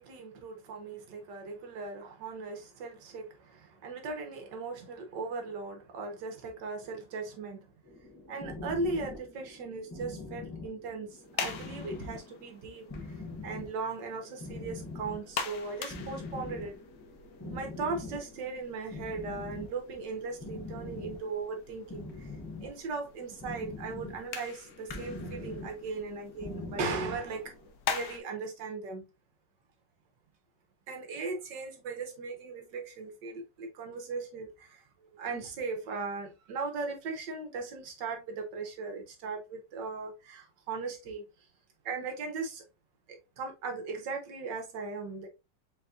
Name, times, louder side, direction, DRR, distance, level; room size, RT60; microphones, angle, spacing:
voice 1, 0.0-7.6 8.3-13.1 13.4-16.8 17.5-22.3 22.6-27.5 27.9-29.1 30.9-34.8 35.1-41.2 41.8-42.6 43.1-45.3, right 4 dB, 70° right, 1.6 m, -38 dB
sound 1, 7.8-27.7, left 2 dB, 15° left, 0.9 m, -44 dB
sound 2, 11.1-28.2, left 6 dB, 65° left, 1.2 m, -44 dB
4.1 x 4.0 x 2.4 m
omnidirectional pair, 2.0 m